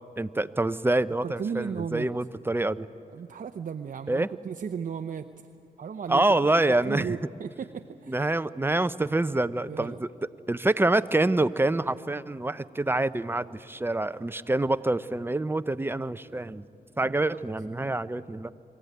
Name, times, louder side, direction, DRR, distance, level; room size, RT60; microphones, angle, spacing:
voice 1, 0.2-2.9 4.1-4.3 6.1-7.2 8.1-10.1 10.5-16.6 17.0-18.5, right 2 dB, 15° right, 13 dB, 0.6 m, -26 dB
voice 2, 1.2-2.1 3.1-5.3 5.8-6.5 6.8-8.3 9.7-10.0 17.0-17.1, right 7 dB, 50° right, 7 dB, 0.7 m, -35 dB
23.0 x 15.0 x 9.5 m, 2.4 s
cardioid pair, 70°, 17 cm